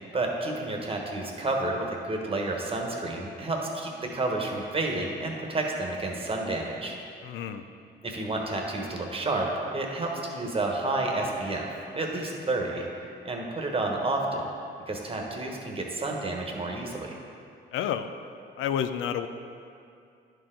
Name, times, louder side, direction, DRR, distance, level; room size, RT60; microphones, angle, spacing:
voice 1, 0.1-7.0 8.0-14.5 14.9-17.1, right 2 dB, 30° right, 0 dB, 1.2 m, -30 dB
voice 2, 7.2-7.6 17.7-18.1 18.6-19.3, left 9 dB, 85° left, 9 dB, 0.4 m, -29 dB
10.5 x 4.6 x 3.8 m, 2.5 s
cardioid pair, 90°, 20 cm